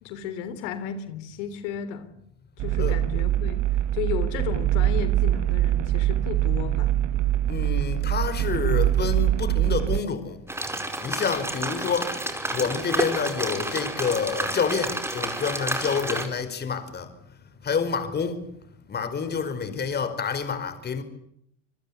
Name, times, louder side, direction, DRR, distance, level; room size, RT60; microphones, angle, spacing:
voice 1, 0.0-2.1 2.6-3.6 3.9-7.0, left 8 dB, 70° left, 3.7 m, -34 dB
sound 1, 2.6-10.0, right 13 dB, 50° right, 1.5 m, -23 dB
voice 2, 7.5-10.4 11.0-12.2 12.5-17.1 17.6-18.4 18.9-21.0, left 6 dB, 25° left, 4.8 m, -28 dB
sound 2, 10.5-16.3, right 1 dB, 5° right, 5.0 m, -30 dB
27.5 x 21.5 x 8.4 m
supercardioid pair, 110°, 36 cm